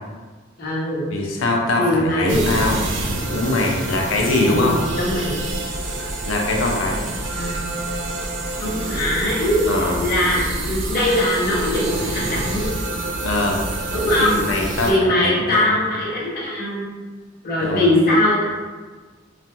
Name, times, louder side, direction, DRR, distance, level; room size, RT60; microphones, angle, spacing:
voice 1, 0.6-1.1 1.7-2.6 4.5-5.3 7.3-7.6 8.6-12.7 13.9-14.4 14.8-16.8 17.4-18.5, left 1 dB, 50° left, -6 dB, 0.7 m, -21 dB
voice 2, 1.1-2.8 3.3-4.8 6.3-7.1 9.7-10.0 13.2-13.6 14.2-15.7 17.6-17.9, left 2 dB, 80° left, 0 dB, 0.5 m, -22 dB
sound 1, 2.3-14.9, right 2 dB, 70° right, 0.4 m, -27 dB
2.4 x 2.1 x 2.8 m, 1.4 s
head